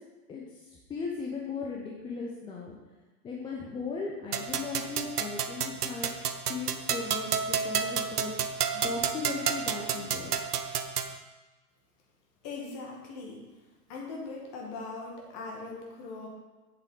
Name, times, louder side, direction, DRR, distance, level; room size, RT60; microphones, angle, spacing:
voice 1, 0.3-2.8 3.2-6.1 6.5-8.3 8.7-10.4, left 4 dB, 10° left, -2 dB, 0.6 m, -37 dB
sound 1, 4.3-11.2, right 7 dB, 75° right, 0.8 m, -31 dB
voice 2, 12.4-13.4 13.9-16.3, left 3 dB, 30° left, 0 dB, 2.0 m, -40 dB
8.5 x 6.7 x 3.8 m, 1.3 s
figure-of-eight pair, 100°, 47 cm